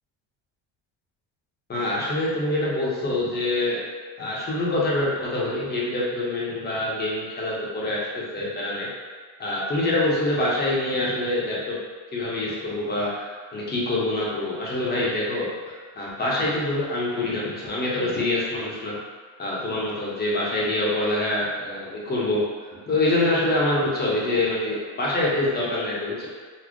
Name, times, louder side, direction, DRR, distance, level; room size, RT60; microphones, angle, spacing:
voice 1, 1.7-3.8 4.2-8.9 9.4-11.8 12.1-19.0 19.4-26.3, left 2 dB, 25° left, -5 dB, 0.7 m, -25 dB
4.1 x 2.0 x 3.0 m, 1.5 s
cardioid pair, 160°, 42 cm